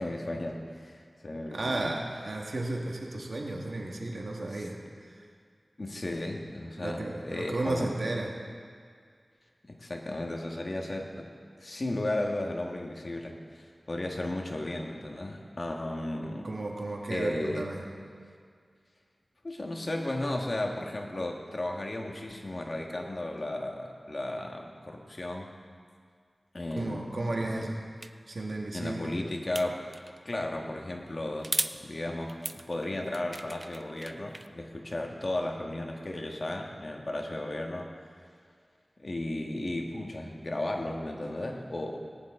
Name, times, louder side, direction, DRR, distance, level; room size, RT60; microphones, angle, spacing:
voice 1, 0.0-1.9 4.5-4.7 5.8-7.9 9.6-11.3 11.6-16.5 17.1-17.7 19.4-25.5 26.5-27.1 27.4-27.6 28.7-29.9 30.2-37.9 39.0-42.0, left 1 dB, 55° left, 1 dB, 1.4 m, -35 dB
voice 2, 1.5-4.8 5.1-5.3 6.8-8.3 16.4-17.8 26.7-27.8 28.3-29.1, right 2 dB, 75° right, 0 dB, 1.6 m, -33 dB
sound 1, 28.0-28.1 29.6-30.2 31.4-31.8 32.3-34.5, right 1 dB, 30° right, 0.4 m, -35 dB
18.0 x 10.0 x 3.7 m, 2.1 s
wide cardioid pair, 65°, 0 cm